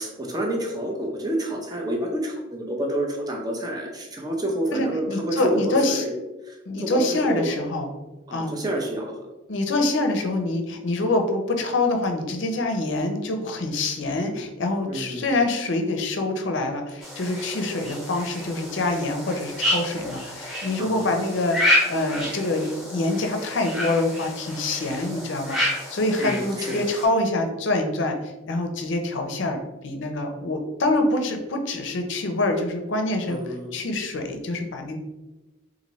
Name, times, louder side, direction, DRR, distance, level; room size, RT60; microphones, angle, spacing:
voice 1, 0.0-6.1 6.4-7.5 8.3-9.1 14.9-15.3 20.8-21.2 26.2-26.8 33.3-33.7, right 1 dB, 20° right, 0 dB, 0.5 m, -28 dB
voice 2, 4.7-6.0 6.7-7.9 8.3-8.5 9.5-25.6 25.9-28.2 28.5-29.6 29.8-35.0, left 2 dB, 60° left, 4 dB, 0.5 m, -25 dB
sound 1, 17.0-27.1, left 1 dB, ahead, 1.0 m, -29 dB
4.0 x 2.6 x 3.0 m, 1.1 s
head